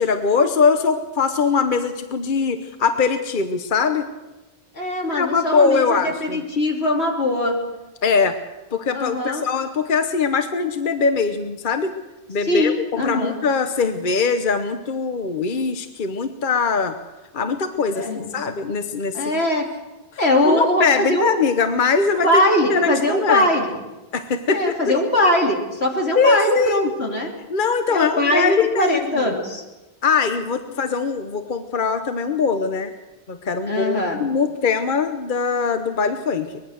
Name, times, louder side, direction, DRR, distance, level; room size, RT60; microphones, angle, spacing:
voice 1, 0.0-4.1 5.1-6.4 8.0-8.4 8.7-11.9 12.3-17.0 17.3-19.4 20.4-22.4 22.7-23.5 24.1-24.9 26.1-26.9 27.5-29.3 30.0-32.9 33.3-36.6, left 5 dB, 55° left, 8 dB, 1.1 m, -21 dB
voice 2, 4.7-7.6 8.9-9.4 12.5-13.4 17.9-18.3 19.1-19.7 20.2-21.3 22.2-23.8 24.5-27.3 27.9-29.6 33.7-34.2, left 1 dB, 85° left, 1 dB, 3.4 m, -21 dB
23.5 x 20.5 x 6.5 m, 1.1 s
omnidirectional pair, 1.1 m